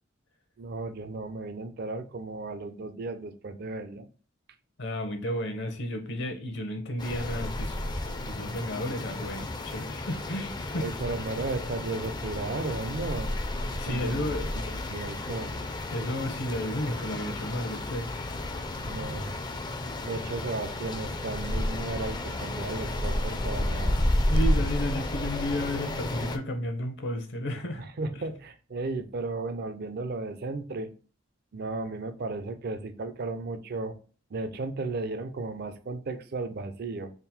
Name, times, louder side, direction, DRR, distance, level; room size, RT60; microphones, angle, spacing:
voice 1, 0.6-4.1 10.8-13.3 13.9-14.3 14.6-15.6 18.8-19.3 20.0-24.0 27.8-30.9 31.5-34.0 34.3-37.1, right 3 dB, 55° right, 0.4 m, -34 dB
voice 2, 4.8-10.9 13.8-14.5 15.9-18.1 24.3-27.8, left 1 dB, 65° left, 0.8 m, -32 dB
sound 1, 7.0-26.4, left 1 dB, 20° left, 0.4 m, -31 dB
3.6 x 2.0 x 4.2 m
head